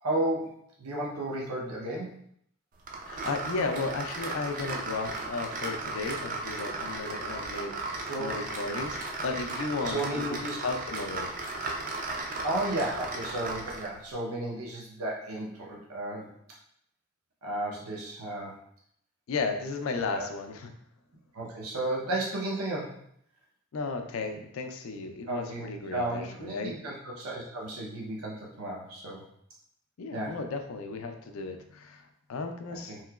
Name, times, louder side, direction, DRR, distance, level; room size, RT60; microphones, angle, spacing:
voice 1, 0.0-2.2 8.1-8.3 9.9-10.6 12.4-16.3 17.4-18.6 20.1-20.3 21.3-23.0 25.3-29.2 30.1-30.4 32.7-33.0, right 1 dB, 90° right, -3 dB, 0.7 m, -33 dB
sound 1, 2.9-14.0, right 3 dB, 35° right, 0.3 m, -36 dB
voice 2, 3.0-10.3 10.6-11.3 19.3-20.7 23.7-26.7 30.0-33.0, left 4 dB, 70° left, 6 dB, 0.4 m, -34 dB
3.0 x 2.8 x 2.3 m, 0.68 s
head